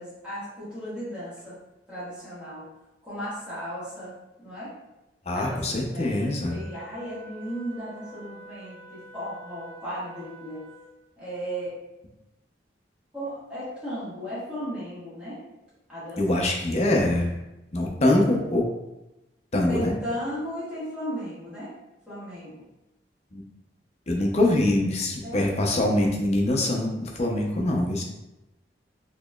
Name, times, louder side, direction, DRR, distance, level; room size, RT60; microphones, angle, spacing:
voice 1, 0.0-1.6 1.9-2.7 3.0-4.1 4.4-4.7 5.3-10.7 11.2-11.7 13.1-15.4 15.9-16.4 19.7-21.7 22.1-22.6 25.2-25.6, equal, 5° right, -12 dB, 1.5 m, -35 dB
voice 2, 5.3-6.6 16.2-17.4 17.7-18.6 19.5-19.9 23.3-23.4 24.1-28.0, left 1 dB, 40° left, 0 dB, 0.5 m, -24 dB
Wind instrument woodwind instrument, 6.4-11.0, right 2 dB, 75° right, 1.4 m, -48 dB
4.1 x 2.9 x 2.2 m, 0.96 s
head